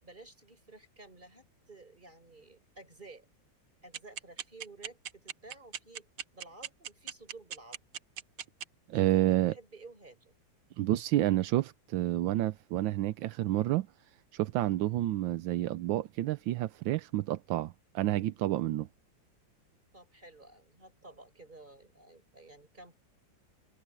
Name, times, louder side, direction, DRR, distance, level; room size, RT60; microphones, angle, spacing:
voice 1, 0.0-3.3 3.8-6.1 6.3-7.8 8.9-10.3 19.9-23.0, right 2 dB, 25° right, 5.8 m, -53 dB
sound 1, 3.9-8.6, right 9 dB, 60° right, 1.0 m, -38 dB
voice 2, 8.9-9.5 10.8-13.9 14.3-18.9, right 15 dB, 85° right, 1.4 m, -29 dB
omnidirectional pair, 2.1 m